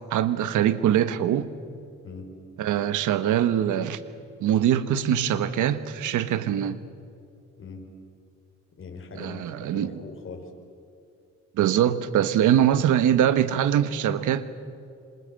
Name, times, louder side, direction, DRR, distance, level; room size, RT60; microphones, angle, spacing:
voice 1, 0.1-1.5 2.6-4.0 4.4-6.8 9.2-9.9 11.6-14.6, right 10 dB, 80° right, 1.4 m, -23 dB
voice 2, 8.8-9.5 9.7-10.5, left 4 dB, 45° left, 5.1 m, -40 dB
27.0 x 27.0 x 7.8 m
cardioid pair, 90°, 30 cm